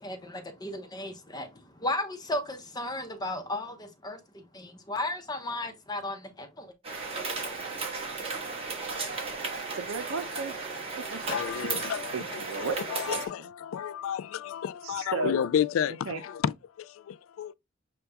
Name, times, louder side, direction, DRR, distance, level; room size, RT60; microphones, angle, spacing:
voice 1, 0.0-6.7, left 1 dB, 20° left, 0.7 m, -35 dB
sound 1, 6.8-13.3, right 4 dB, 30° right, 1.3 m, -35 dB
voice 2, 9.7-10.5 11.0-11.2 12.1-12.8 13.1-13.2 14.8-15.3 16.1-16.2, right 4 dB, 85° right, 0.5 m, -34 dB
voice 3, 11.3-17.5, left 8 dB, 85° left, 0.3 m, -31 dB
6.8 x 2.3 x 3.4 m
head